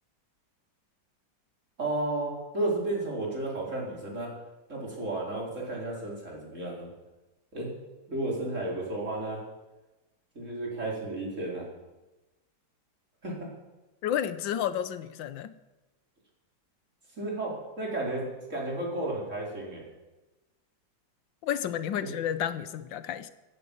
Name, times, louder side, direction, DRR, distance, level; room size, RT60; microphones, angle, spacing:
voice 1, 1.8-4.3 4.7-6.9 7.5-7.7 8.1-9.4 10.3-11.7 13.2-13.5 17.2-18.2 18.5-19.8 22.0-22.1, right 2 dB, 40° right, -3 dB, 4.8 m, -33 dB
voice 2, 14.0-15.5 21.4-23.3, left 10 dB, 80° left, 14 dB, 1.5 m, -31 dB
16.0 x 15.0 x 5.5 m, 1.1 s
omnidirectional pair, 2.0 m